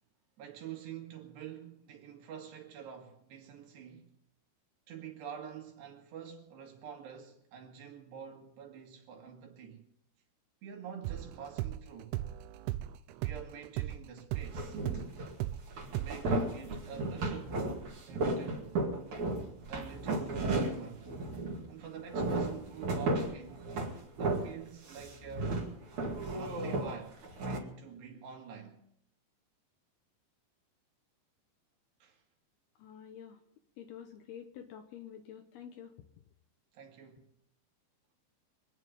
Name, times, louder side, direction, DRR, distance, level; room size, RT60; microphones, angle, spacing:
voice 1, 0.4-4.1 4.9-9.9 10.6-12.2 13.2-14.8 16.0-18.8 19.7-21.1 21.7-23.7 24.2-25.6 26.3-28.8 32.0-32.2 36.7-37.3, right 8 dB, 70° right, 3.9 m, -47 dB
sound 1, 11.0-15.6 15.9-16.2, right 14 dB, 85° right, 3.1 m, -36 dB
sound 2, 14.5-15.3 15.7-21.7 22.0-24.6 24.9-27.6, right 2 dB, 45° right, 3.1 m, -34 dB
voice 2, 32.8-33.4 33.8-35.9, left 9 dB, 75° left, 2.5 m, -48 dB
25.0 x 9.7 x 5.4 m
omnidirectional pair, 5.3 m